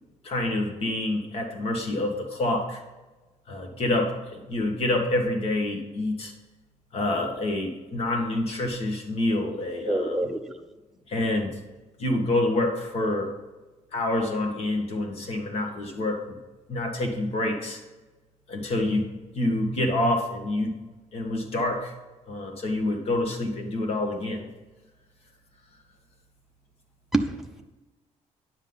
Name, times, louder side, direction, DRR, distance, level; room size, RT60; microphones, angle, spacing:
voice 1, 0.2-2.8 3.5-6.3 6.9-10.2 11.1-11.6 12.0-13.3 13.9-16.4 16.7-17.8 18.5-20.7 21.1-21.9 22.3-24.5, left 1 dB, 50° left, 3 dB, 1.8 m, -27 dB
voice 2, 9.9-10.6 27.1-27.6, right 2 dB, ahead, 2 dB, 0.6 m, -27 dB
9.8 x 7.5 x 4.0 m, 1.2 s
cardioid pair, 155°, 13 cm